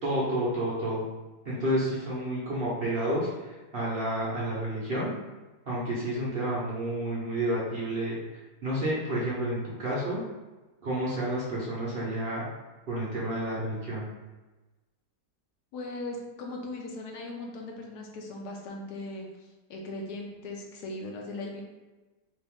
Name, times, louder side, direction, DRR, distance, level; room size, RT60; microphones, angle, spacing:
voice 1, 0.0-1.0 1.4-5.1 5.7-8.2 8.6-10.2 10.8-12.4 12.9-14.0, right 1 dB, 50° right, -6 dB, 0.7 m, -30 dB
voice 2, 15.7-21.6, left 2 dB, 75° left, 1 dB, 1.3 m, -39 dB
3.2 x 2.9 x 3.4 m, 1.2 s
omnidirectional pair, 1.8 m